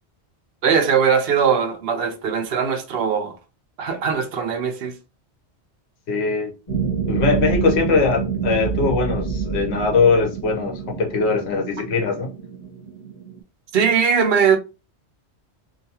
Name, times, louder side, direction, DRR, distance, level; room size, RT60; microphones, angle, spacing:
voice 1, 0.6-3.4 3.8-5.0 13.7-14.6, right 6 dB, 65° right, 0.7 m, -20 dB
voice 2, 6.1-6.5 7.1-12.3, left 4 dB, 70° left, 1.0 m, -21 dB
sound 1, 6.7-13.4, right 6 dB, 40° left, 1.0 m, -27 dB
2.6 x 2.2 x 2.8 m
omnidirectional pair, 1.2 m